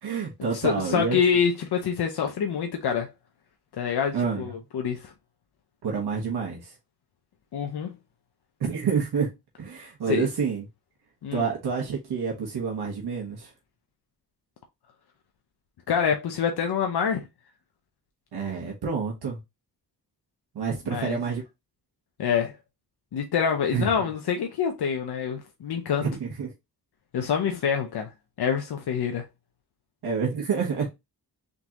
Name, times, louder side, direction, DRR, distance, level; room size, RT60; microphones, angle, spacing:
voice 1, 0.0-1.2 4.1-4.5 5.8-6.7 8.6-9.3 9.6-10.6 11.3-13.5 18.3-19.4 20.5-21.4 23.7-23.9 26.0-26.5 30.0-30.9, right 6 dB, 85° right, 1.2 m, -28 dB
voice 2, 0.5-3.1 3.8-5.1 7.5-8.0 10.1-10.3 11.2-11.5 15.9-17.3 20.9-21.2 22.2-22.5 23.1-26.1 27.1-28.1 28.4-29.2, left 7 dB, 85° left, 0.7 m, -26 dB
3.9 x 3.6 x 2.9 m
wide cardioid pair, 90°, 38 cm